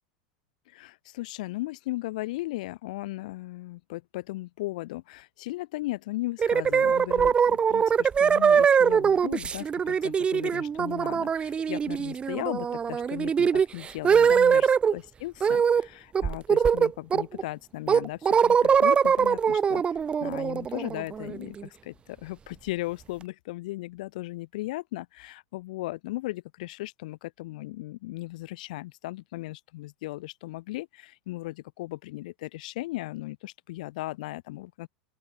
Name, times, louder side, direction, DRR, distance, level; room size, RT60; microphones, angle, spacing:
voice 1, 0.7-19.8 20.2-34.9, left 19 dB, 75° left, 3.6 m, -37 dB
sound 1, 6.4-14.9 15.4-15.9 16.2-17.4 17.9-21.6, right 7 dB, 25° right, 1.3 m, -22 dB
open air
hypercardioid pair, 110°, 4 cm